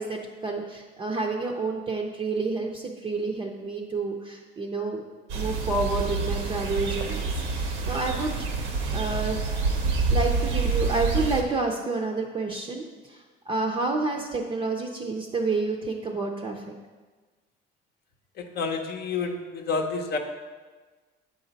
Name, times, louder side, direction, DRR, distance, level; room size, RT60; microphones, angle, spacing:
voice 1, 0.0-5.0 5.3-8.4 8.9-9.4 10.1-16.6, right 3 dB, 25° right, 1 dB, 0.5 m, -29 dB
sound 1, 5.3-11.4, right 4 dB, 90° right, 1.0 m, -27 dB
voice 2, 18.4-20.2, left 4 dB, 55° left, 3 dB, 0.7 m, -29 dB
7.8 x 5.1 x 4.0 m, 1.4 s
cardioid pair, 135°, 20 cm